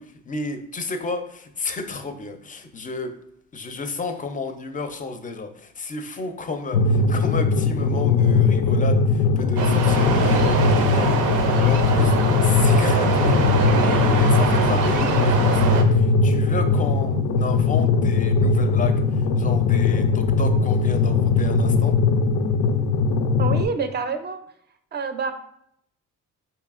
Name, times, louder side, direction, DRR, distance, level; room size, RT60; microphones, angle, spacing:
voice 1, 0.0-3.1 3.5-12.1 12.4-22.0, left 3 dB, 25° left, 7 dB, 0.5 m, -32 dB
sound 1, 6.7-23.6, left 4 dB, 85° left, 0.5 m, -20 dB
sound 2, 9.6-15.8, right 4 dB, 85° right, 0.6 m, -23 dB
voice 2, 23.4-24.4 24.9-25.3, right 5 dB, 35° right, 8 dB, 0.5 m, -27 dB
4.6 x 2.8 x 2.4 m, 0.72 s
cardioid pair, 90°, 30 cm